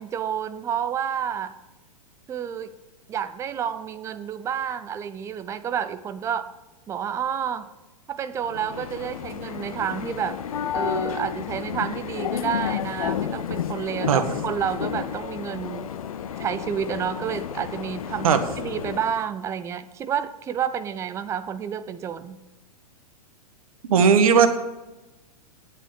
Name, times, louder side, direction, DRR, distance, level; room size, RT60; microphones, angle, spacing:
voice 1, 0.0-1.5 2.3-2.7 3.1-6.5 6.9-7.7 8.1-10.4 10.7-15.9 16.4-22.4, right 8 dB, 15° right, 11 dB, 0.5 m, -30 dB
sound 1, 8.4-19.3, left 8 dB, 65° left, 0.7 m, -31 dB
voice 2, 23.9-24.5, right 6 dB, 60° right, 9 dB, 1.2 m, -16 dB
8.9 x 8.8 x 6.6 m, 1.1 s
figure-of-eight pair, 105°, 20 cm